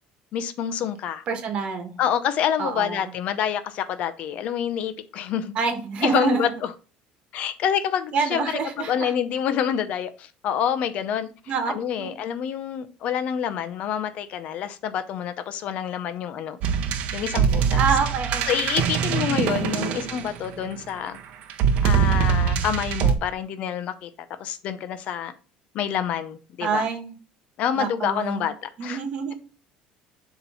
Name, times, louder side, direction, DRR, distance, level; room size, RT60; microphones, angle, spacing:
voice 1, 0.3-1.2 2.0-5.5 6.0-6.7 7.3-8.5 8.8-11.3 11.7-16.6 17.1-17.8 18.5-21.2 21.8-24.1 24.4-25.3 25.7-26.9 27.6-29.0, left 9 dB, 50° left, 0.7 m, -27 dB
voice 2, 1.3-2.0 2.6-3.1 5.5-6.6 8.1-9.1 11.5-11.7 12.0-12.2 17.7-18.7 19.0-20.0 26.6-27.1 27.7-28.5 28.8-29.3, right 5 dB, 40° right, 1.3 m, -27 dB
sound 1, 16.6-20.7 21.5-23.1, right 7 dB, 55° right, 0.8 m, -23 dB
7.2 x 3.1 x 5.5 m
cardioid pair, 155°, 3 cm